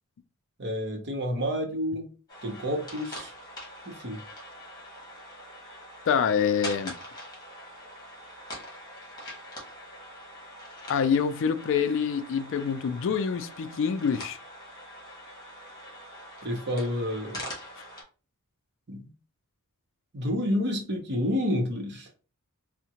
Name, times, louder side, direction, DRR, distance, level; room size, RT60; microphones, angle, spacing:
voice 1, 0.6-2.1 2.4-3.3 3.9-4.2 16.4-17.4 18.9-19.1 20.1-22.1, left 1 dB, 50° right, 0.8 m, -29 dB
sound 1, 2.3-18.0, equal, 20° left, 1.4 m, -43 dB
voice 2, 6.1-6.9 10.9-14.4, left 6 dB, 60° left, 0.4 m, -26 dB
3.6 x 2.1 x 2.8 m
head